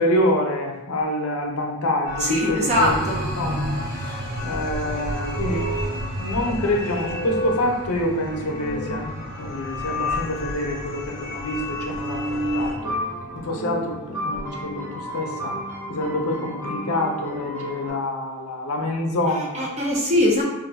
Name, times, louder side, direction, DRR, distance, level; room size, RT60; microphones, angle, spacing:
voice 1, 0.0-5.6 6.1-13.0 13.3-15.6 15.9-19.7, left 1 dB, 75° left, 1 dB, 0.6 m, -27 dB
sound 1, 2.0-12.7, left 1 dB, 35° left, 0.8 m, -31 dB
voice 2, 2.2-3.2 19.3-20.4, left 1 dB, 30° right, -2 dB, 0.6 m, -21 dB
sound 2, 2.7-16.0, right 1 dB, 90° right, 0.9 m, -36 dB
sound 3, 12.7-17.9, equal, 10° left, 1.0 m, -32 dB
2.5 x 2.2 x 4.0 m, 1.0 s
head